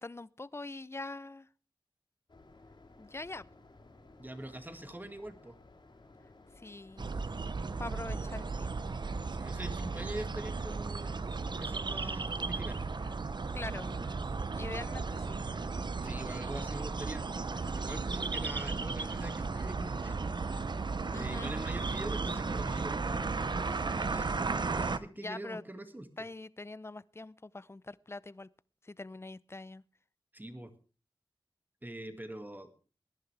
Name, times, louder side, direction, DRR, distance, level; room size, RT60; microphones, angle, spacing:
voice 1, 0.0-1.5 3.0-3.5 6.6-7.1 7.8-8.7 13.5-13.9 14.6-15.4 21.1-21.5 25.2-25.6 26.2-28.5 28.8-29.8, left 2 dB, 30° left, 0.6 m, -43 dB
sound 1, 2.3-10.9, left 2 dB, 60° left, 3.9 m, -57 dB
voice 2, 4.2-5.6 9.3-12.8 16.0-17.3 17.7-20.2 21.2-26.3 30.3-30.7 31.8-32.7, right 1 dB, 20° right, 2.1 m, -44 dB
sound 2, 7.0-25.0, right 4 dB, 55° right, 0.7 m, -35 dB
sound 3, 9.0-25.0, right 1 dB, 90° right, 4.7 m, -61 dB
19.5 x 11.0 x 3.4 m
cardioid pair, 45°, 9 cm